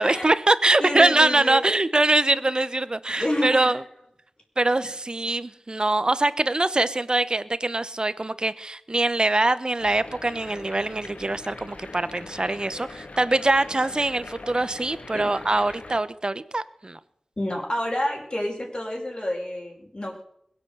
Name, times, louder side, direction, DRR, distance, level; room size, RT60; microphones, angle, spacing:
voice 1, 0.0-3.8 4.6-17.0, right 2 dB, 35° right, 15 dB, 1.0 m, -23 dB
voice 2, 0.8-1.6 2.3-2.4 3.2-3.7 15.1-15.3 17.4-20.2, left 1 dB, 40° left, -1 dB, 5.0 m, -29 dB
sound 1, 9.8-16.0, left 2 dB, 70° left, 1.8 m, -41 dB
21.5 x 8.4 x 7.9 m, 0.71 s
wide cardioid pair, 75°, 2 cm